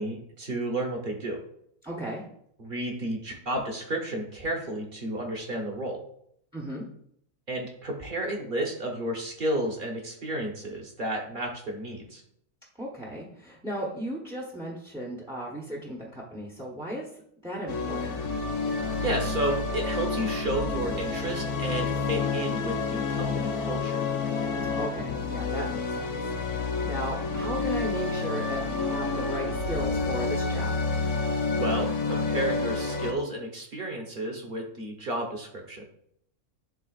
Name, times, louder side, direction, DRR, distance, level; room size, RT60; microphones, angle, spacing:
voice 1, 0.0-1.4 2.6-6.0 7.5-12.2 19.0-24.1 31.6-35.8, right 1 dB, 35° right, 1 dB, 1.3 m, -32 dB
voice 2, 1.8-2.2 6.5-6.8 12.8-18.2 24.8-26.1 26.5-30.7, equal, 5° right, -3 dB, 0.8 m, -36 dB
sound 1, 17.7-33.1, left 4 dB, 80° left, 1.3 m, -29 dB
11.0 x 3.7 x 2.5 m, 0.70 s
omnidirectional pair, 1.6 m